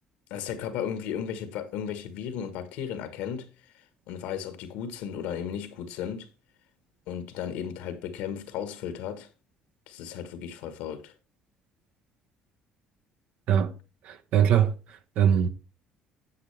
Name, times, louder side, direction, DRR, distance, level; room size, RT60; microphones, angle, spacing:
voice 1, 0.3-3.5 3.7-6.3 7.1-9.3 9.9-11.1, left 8 dB, 85° left, 1.4 m, -35 dB
voice 2, 14.0-15.5, right 9 dB, 70° right, 1.0 m, -23 dB
9.5 x 7.7 x 3.4 m
supercardioid pair, 85°, 2 cm